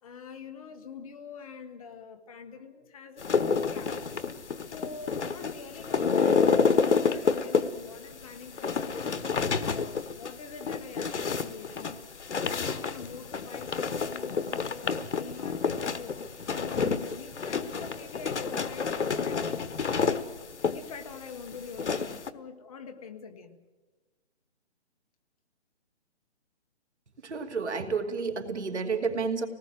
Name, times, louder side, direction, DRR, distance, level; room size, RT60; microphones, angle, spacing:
voice 1, 0.0-4.1 4.7-20.2 20.7-23.6, left 5 dB, 30° left, 7 dB, 1.6 m, -45 dB
sound 1, 3.2-22.3, left 5 dB, 85° left, 1.3 m, -29 dB
voice 2, 27.2-29.5, right 5 dB, 80° right, 6 dB, 2.7 m, -30 dB
26.0 x 18.5 x 7.8 m, 1.2 s
hypercardioid pair, 160°, 34 cm